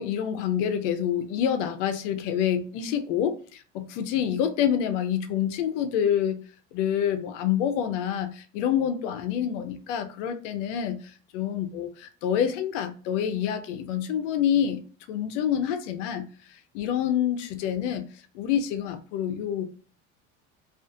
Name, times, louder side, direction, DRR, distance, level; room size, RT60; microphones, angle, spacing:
voice 1, 0.0-6.4 6.7-11.0 11.3-14.8 15.1-16.3 16.7-18.1 18.3-19.7, left 9 dB, 80° left, 0.6 m, -27 dB
2.5 x 2.5 x 2.5 m
supercardioid pair, 90°, 36 cm